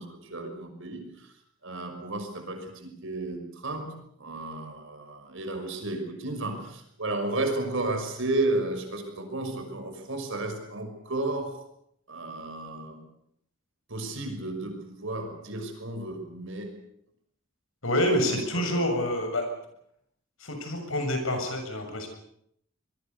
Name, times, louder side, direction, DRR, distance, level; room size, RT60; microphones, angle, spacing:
voice 1, 0.0-1.4 1.6-11.6 12.1-13.0 13.9-16.8 18.3-18.9, right 2 dB, 65° right, 5 dB, 5.9 m, -33 dB
voice 2, 17.8-19.5 20.4-22.1, left 1 dB, 70° left, 5 dB, 7.0 m, -27 dB
26.0 x 21.5 x 6.9 m, 0.72 s
head